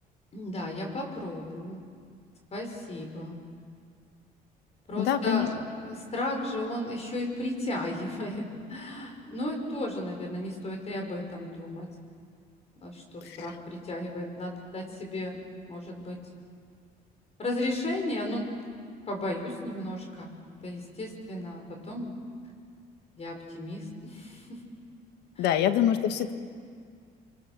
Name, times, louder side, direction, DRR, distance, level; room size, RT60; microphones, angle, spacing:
voice 1, 0.3-1.8 2.5-3.4 4.9-11.9 12.8-15.4 15.7-16.2 17.4-18.5 19.1-20.3 20.6-22.2 23.2-24.6 25.4-25.5, left 1 dB, 40° left, 2 dB, 5.7 m, -34 dB
voice 2, 4.9-5.5 13.2-13.5 25.4-26.3, left 10 dB, 85° left, 9 dB, 1.5 m, -25 dB
29.0 x 24.5 x 6.9 m, 2.1 s
cardioid pair, 110°, 17 cm